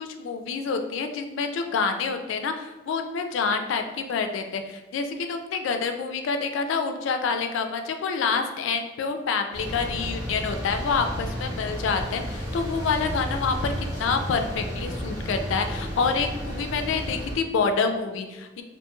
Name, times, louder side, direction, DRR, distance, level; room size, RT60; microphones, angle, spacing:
voice 1, 0.0-18.6, left 5 dB, 80° left, 6 dB, 0.3 m, -27 dB
sound 1, 9.5-17.3, equal, 20° right, 0.6 m, -32 dB
2.7 x 2.2 x 2.9 m, 1.1 s
head